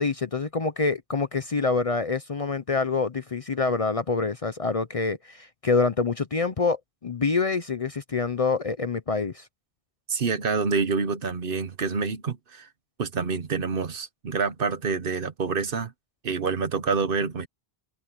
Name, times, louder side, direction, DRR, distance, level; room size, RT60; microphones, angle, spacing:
voice 1, 0.0-9.5, left 4 dB, 40° left, 0.7 m, -26 dB
voice 2, 10.1-12.7 13.0-15.9 16.2-17.5, right 5 dB, 60° right, 1.2 m, -27 dB
omnidirectional pair, 1.1 m